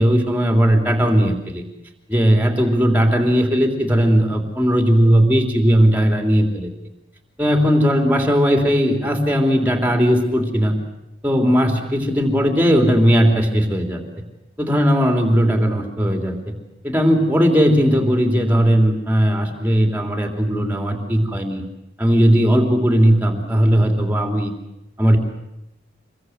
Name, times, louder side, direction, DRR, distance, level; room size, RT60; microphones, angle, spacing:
voice 1, 0.0-1.6 2.1-6.7 7.4-10.8 11.2-14.0 14.6-16.3 16.8-21.6 22.0-24.5 25.0-25.2, equal, 10° right, 3 dB, 3.1 m, -17 dB
26.0 x 21.5 x 8.0 m, 0.88 s
head